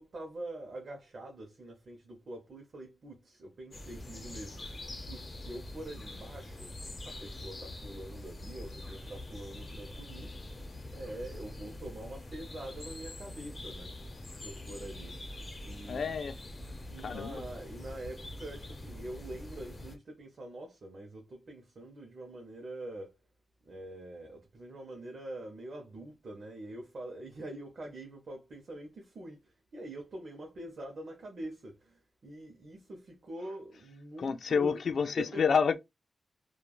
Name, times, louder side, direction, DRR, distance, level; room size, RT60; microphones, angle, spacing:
voice 1, 0.0-6.7 7.0-10.4 10.9-14.0 14.4-16.2 16.9-23.2 23.6-34.7 35.2-35.4, right 1 dB, 60° right, 0.7 m, -45 dB
sound 1, 3.7-20.0, left 1 dB, 40° left, 0.7 m, -44 dB
voice 2, 15.8-16.4 17.0-17.4 34.2-35.7, left 6 dB, 75° left, 0.3 m, -29 dB
3.2 x 2.3 x 2.3 m
wide cardioid pair, 110°, 0 cm